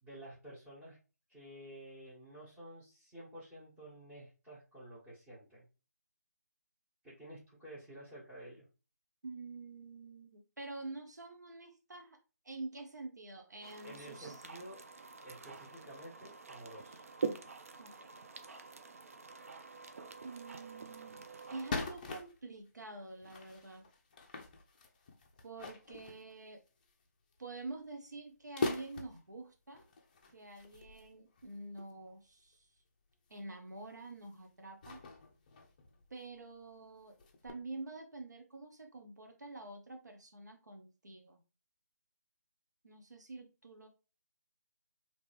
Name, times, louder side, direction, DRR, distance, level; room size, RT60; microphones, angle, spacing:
voice 1, 0.0-1.0 1.3-5.7 7.0-8.6 13.8-14.8 15.2-17.0, right 1 dB, 15° right, -11 dB, 1.3 m, -51 dB
voice 2, 9.2-12.2 12.4-14.4 17.8-18.2 20.2-21.2 21.5-23.8 25.4-26.6 27.4-29.9 30.3-32.7 33.3-35.0 36.1-37.1 37.4-41.4 42.8-43.9, right 2 dB, 80° right, 4 dB, 0.8 m, -47 dB
sound 1, 13.6-21.7, right 5 dB, 55° right, 0.5 m, -45 dB
sound 2, 20.3-20.4 20.7-20.8 21.3-22.7 23.2-26.9 27.3-27.6 27.9-28.0 28.6-29.3 29.7-31.9 32.5-32.6 33.3-33.5 33.8-34.3 34.8-36.4 36.6-36.7 37.0-37.5, left 3 dB, 30° left, 0.5 m, -43 dB
3.5 x 2.8 x 3.1 m, 0.32 s
figure-of-eight pair, 155°, 9 cm